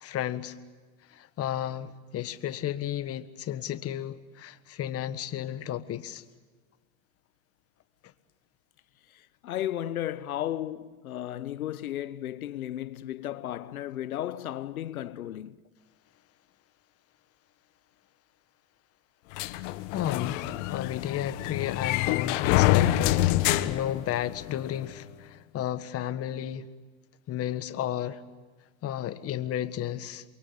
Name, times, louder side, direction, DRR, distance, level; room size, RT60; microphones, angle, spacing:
voice 1, 0.0-0.6 1.1-6.2 19.9-26.7 27.3-28.2 28.8-30.2, left 11 dB, 35° left, 1.6 m, -33 dB
voice 2, 9.1-15.6, left 12 dB, 90° left, 1.2 m, -34 dB
sound 1, 19.3-24.6, left 15 dB, 60° left, 1.5 m, -26 dB
29.0 x 23.0 x 7.2 m
hypercardioid pair, 110°, 42 cm